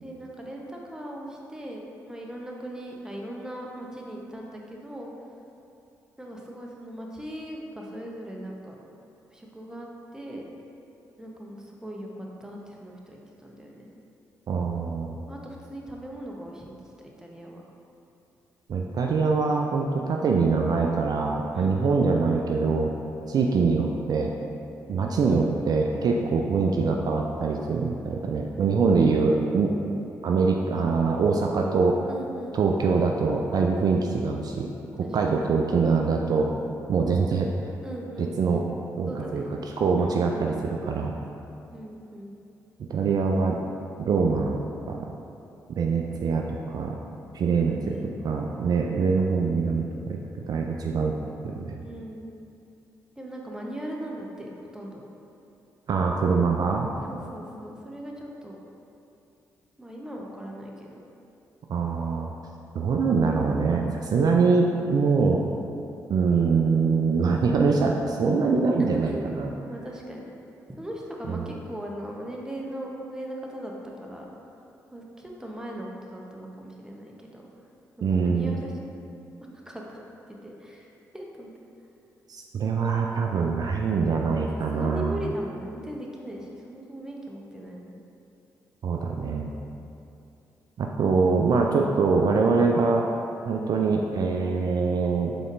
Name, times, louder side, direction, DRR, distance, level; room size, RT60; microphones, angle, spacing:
voice 1, 0.0-5.1 6.2-8.8 9.3-10.4 11.2-13.9 15.3-16.7 17.2-17.6 21.5-22.0 26.5-26.7 28.9-29.5 32.1-32.9 35.0-35.5 37.8-38.6 39.1-39.5 40.0-40.5 41.7-42.3 47.5-48.2 51.8-52.3 53.2-55.0 57.1-58.6 59.8-61.0 69.0-69.2 69.7-70.3 70.8-73.7 74.0-74.2 74.9-77.5 78.0-78.7 79.4-80.0 80.4-80.9 81.1-81.5 84.3-88.0, right 1 dB, 10° right, -2 dB, 0.8 m, -39 dB
voice 2, 14.5-15.2 18.7-22.9 23.3-24.3 24.9-29.7 30.2-32.0 32.5-34.7 35.1-36.5 36.9-37.5 38.4-38.6 39.0-39.4 39.8-41.1 42.9-43.6 44.0-44.6 44.9-45.0 45.8-47.0 47.3-48.0 48.2-50.2 50.5-51.1 51.4-51.8 55.9-56.9 61.7-62.3 62.7-65.4 66.1-69.5 71.3-71.5 78.0-78.5 82.3-85.3 88.8-89.5 90.8-93.0 93.5-95.3, right 4 dB, 55° right, 1 dB, 0.3 m, -24 dB
5.0 x 3.9 x 2.5 m, 2.8 s
hypercardioid pair, 40°, 8 cm